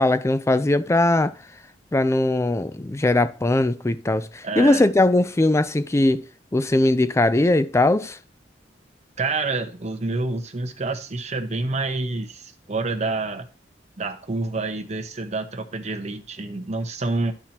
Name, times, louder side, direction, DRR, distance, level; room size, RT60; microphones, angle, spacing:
voice 1, 0.0-1.3 1.9-6.3 6.5-8.2, left 2 dB, 15° left, 0.4 m, -20 dB
voice 2, 4.4-4.8 9.2-13.5 14.0-17.3, right 3 dB, 40° right, 0.9 m, -28 dB
12.0 x 4.3 x 2.9 m
head